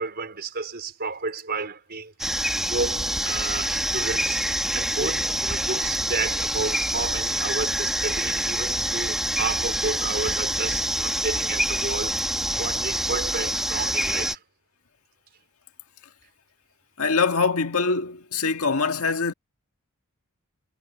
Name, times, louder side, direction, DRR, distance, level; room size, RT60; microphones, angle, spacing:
voice 1, 0.0-2.4 2.7-4.4 4.7-12.2 12.6-14.4, right 4 dB, 45° right, 4.5 m, -31 dB
sound 1, 2.2-14.3, right 1 dB, ahead, 1.2 m, -26 dB
voice 2, 17.0-19.3, left 4 dB, 70° left, 1.8 m, -23 dB
head